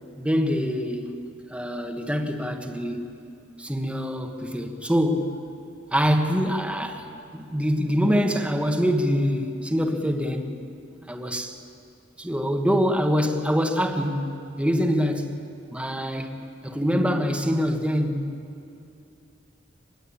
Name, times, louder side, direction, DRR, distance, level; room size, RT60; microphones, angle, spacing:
voice 1, 0.2-1.1 1.5-3.0 3.6-5.4 5.9-7.0 7.3-10.6 11.1-11.6 12.2-15.4 15.7-16.4 16.6-18.3, equal, 5° right, 1.5 m, -24 dB
24.5 x 21.0 x 8.7 m
head